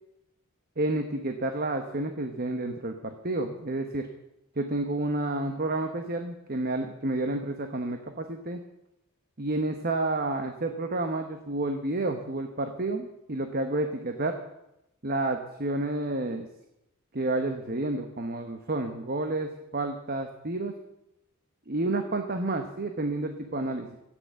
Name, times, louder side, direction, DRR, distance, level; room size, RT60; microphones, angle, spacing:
voice 1, 0.8-4.1 4.5-8.6 9.4-14.4 15.0-16.5 17.1-20.7 21.7-24.0, right 2 dB, 40° right, 6 dB, 1.1 m, -30 dB
13.5 x 9.2 x 8.1 m, 0.88 s
head